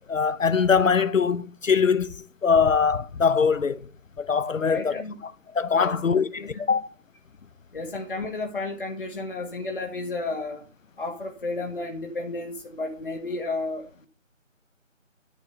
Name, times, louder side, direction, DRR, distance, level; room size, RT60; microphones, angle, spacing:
voice 1, 0.1-3.9 4.2-6.9, left 6 dB, 75° left, 0.7 m, -23 dB
voice 2, 4.6-5.2 5.8-6.5 7.7-10.7 11.0-14.1, left 3 dB, 40° left, 1.6 m, -32 dB
10.0 x 7.3 x 5.6 m
figure-of-eight pair, 165°, 40 cm